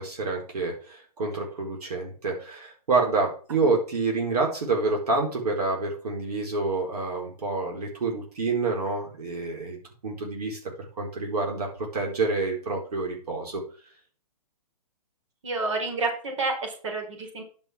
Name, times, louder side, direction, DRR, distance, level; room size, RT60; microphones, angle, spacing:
voice 1, 0.0-9.8 10.0-10.6 11.0-13.6, right 3 dB, 75° right, 0 dB, 4.4 m, -28 dB
voice 2, 15.4-17.4, right 3 dB, 50° right, 2 dB, 4.6 m, -29 dB
10.5 x 5.9 x 6.1 m, 0.40 s
hypercardioid pair, 180°, 20 cm